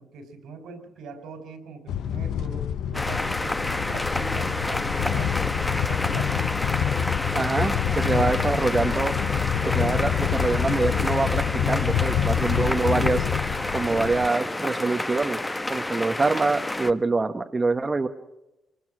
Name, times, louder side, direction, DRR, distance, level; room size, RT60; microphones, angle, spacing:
voice 1, 0.0-6.7, right 4 dB, 80° right, 8 dB, 3.9 m, -41 dB
sound 1, 1.9-14.3, left 9 dB, 75° left, 0.7 m, -27 dB
sound 2, 2.9-16.9, left 1 dB, 15° left, 1.1 m, -29 dB
voice 2, 7.3-9.1 9.6-13.3 13.7-15.4 15.7-18.1, right 3 dB, 25° right, 6 dB, 1.1 m, -25 dB
24.0 x 19.5 x 6.1 m, 0.94 s
cardioid pair, 90°, 0 cm